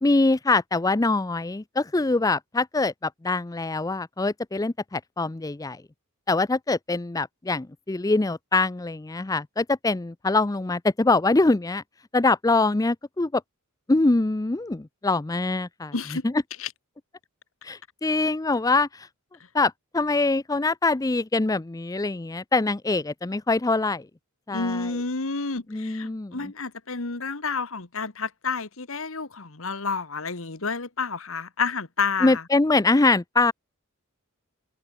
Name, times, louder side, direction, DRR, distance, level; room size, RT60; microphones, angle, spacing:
voice 1, 0.0-5.8 6.3-11.8 12.1-13.4 13.9-15.9 16.2-16.3 17.6-19.1 19.5-24.1 24.5-24.9 25.7-26.5 32.2-33.5, left 3 dB, 15° left, 0.5 m, -24 dB
voice 2, 15.9-16.2 16.6-16.7 24.5-32.4, left 4 dB, 65° left, 1.6 m, -30 dB
open air
head